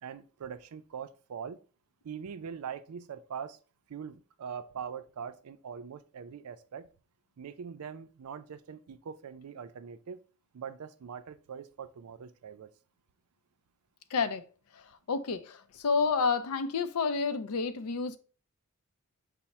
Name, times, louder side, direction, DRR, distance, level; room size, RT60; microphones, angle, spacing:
voice 1, 0.0-1.6 2.0-3.6 3.9-6.9 7.4-10.2 10.5-12.7, right 7 dB, 80° right, 0.4 m, -42 dB
voice 2, 14.1-14.4 14.7-18.2, left 5 dB, 80° left, 0.5 m, -30 dB
5.7 x 2.1 x 4.1 m
head